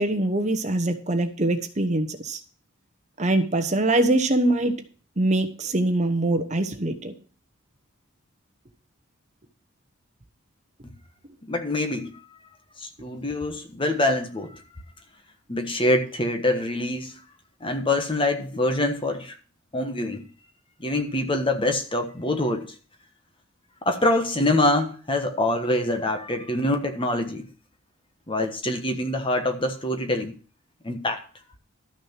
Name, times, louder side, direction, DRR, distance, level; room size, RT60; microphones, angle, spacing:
voice 1, 0.0-2.4 3.2-4.8 5.2-7.1, right 2 dB, 35° right, 1.1 m, -23 dB
voice 2, 11.4-12.2 12.8-14.6 15.5-17.2 17.6-19.3 19.7-20.2 20.8-22.7 23.8-27.5 28.3-30.3 30.8-31.2, left 1 dB, 25° left, 1.3 m, -25 dB
12.5 x 6.4 x 5.8 m
head